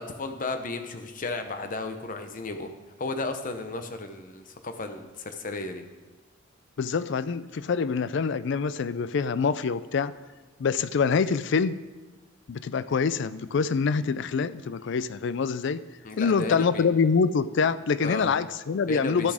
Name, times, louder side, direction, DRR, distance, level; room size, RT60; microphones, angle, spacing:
voice 1, 0.0-2.7 3.0-5.8 16.0-16.9 18.0-18.3 18.9-19.3, left 3 dB, 45° left, 7 dB, 0.9 m, -34 dB
voice 2, 6.8-10.1 10.6-11.7 12.5-15.8 16.2-19.3, left 5 dB, 65° left, 15 dB, 0.4 m, -25 dB
12.5 x 6.9 x 4.9 m, 1.3 s
head